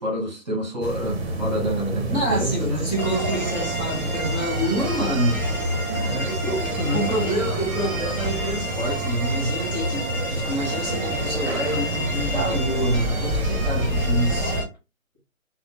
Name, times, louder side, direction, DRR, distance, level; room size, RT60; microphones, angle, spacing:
voice 1, 0.0-2.9 5.9-7.1, equal, 30° right, 1.2 m, -28 dB
sound 1, 0.8-14.6, right 1 dB, 50° right, 0.7 m, -29 dB
voice 2, 2.1-5.4 6.9-14.6, right 1 dB, 30° left, 0.8 m, -27 dB
sound 2, 3.0-14.6, equal, 10° right, 1.2 m, -30 dB
3.2 x 2.0 x 2.7 m
hypercardioid pair, 170°, 42 cm